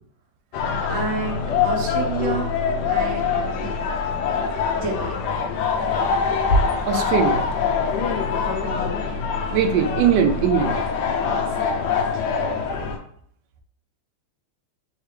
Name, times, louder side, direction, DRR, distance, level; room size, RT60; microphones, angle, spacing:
sound 1, 0.5-13.0, left 5 dB, 85° left, 0.9 m, -24 dB
voice 1, 0.9-2.6 2.9-3.7 4.7-5.1 8.4-8.9 11.2-11.9 12.1-12.2, right 4 dB, 50° right, -1 dB, 1.0 m, -31 dB
voice 2, 6.8-7.5 9.5-10.8, right 8 dB, 90° right, 5 dB, 0.9 m, -20 dB
3.6 x 3.3 x 3.3 m, 0.63 s
omnidirectional pair, 2.4 m